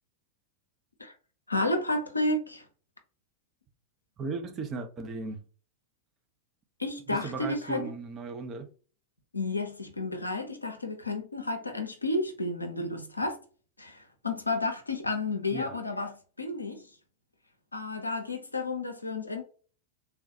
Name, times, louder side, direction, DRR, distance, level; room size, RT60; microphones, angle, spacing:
voice 1, 1.5-2.6 6.8-7.9 9.3-13.4 13.8-16.8 17.7-19.4, left 2 dB, 85° left, 0.6 m, -31 dB
voice 2, 4.2-5.4 7.1-8.7 15.5-15.8, right 3 dB, 25° right, 0.6 m, -36 dB
3.5 x 2.3 x 2.7 m
figure-of-eight pair, 90°, 0 cm